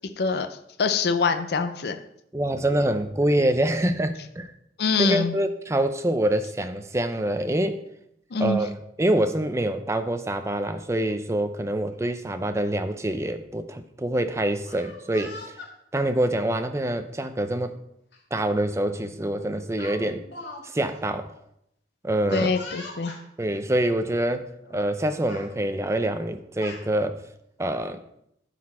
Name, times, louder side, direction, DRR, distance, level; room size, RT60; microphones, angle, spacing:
voice 1, 0.2-2.0 4.8-5.3 8.3-8.6 22.3-23.1, left 4 dB, 60° left, 7 dB, 0.5 m, -24 dB
voice 2, 2.3-4.5 5.0-7.8 8.4-15.6 15.9-17.8 18.3-20.3 20.6-21.3 22.0-22.5 23.4-27.2 27.6-28.0, right 1 dB, 15° right, 8 dB, 0.5 m, -26 dB
Speech, 14.6-15.7 16.6-16.9 18.1-18.2 18.6-18.8 19.8-20.6 20.9-21.0 22.3-23.2 24.1-24.2 24.6-24.9 25.2-25.5 26.3-26.8, left 2 dB, 80° left, 1.7 m, -41 dB
12.0 x 4.2 x 4.2 m, 0.76 s
head